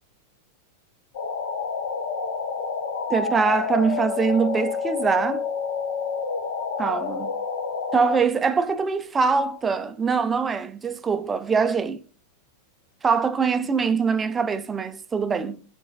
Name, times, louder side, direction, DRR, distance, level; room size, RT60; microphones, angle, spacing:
sound 1, 1.1-8.2, left 5 dB, 55° left, 0.4 m, -28 dB
voice 1, 3.1-5.5 6.8-7.4 7.9-12.0 13.0-15.6, right 5 dB, 15° right, 0.3 m, -23 dB
4.7 x 2.3 x 2.4 m
figure-of-eight pair, 90°, 0 cm